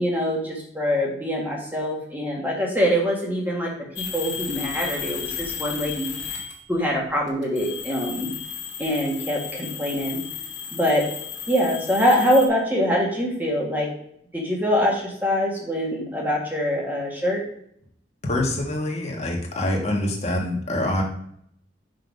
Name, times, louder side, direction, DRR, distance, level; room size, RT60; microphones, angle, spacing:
voice 1, 0.0-3.7 4.0-6.4 6.7-8.3 8.8-10.2 10.7-11.0 11.5-13.9 14.3-17.4, equal, 10° right, -2 dB, 1.7 m, -24 dB
sound 1, 4.0-6.8 7.3-12.5, left 8 dB, 80° left, 1.8 m, -34 dB
voice 2, 18.2-21.0, left 1 dB, 35° left, 0 dB, 1.4 m, -25 dB
5.5 x 3.9 x 5.3 m, 0.69 s
head